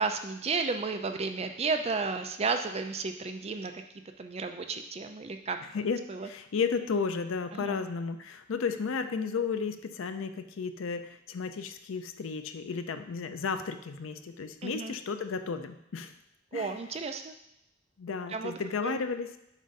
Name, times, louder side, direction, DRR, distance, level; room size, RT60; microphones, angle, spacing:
voice 1, 0.0-3.7 4.2-5.6 6.1-6.3 7.5-7.8 14.6-14.9 16.5-17.3 18.3-19.0, right 4 dB, 30° right, 6 dB, 0.4 m, -33 dB
voice 2, 5.7-16.1 16.5-16.8 18.0-19.3, left 5 dB, 75° left, 9 dB, 0.5 m, -33 dB
7.3 x 2.6 x 5.3 m, 0.84 s
head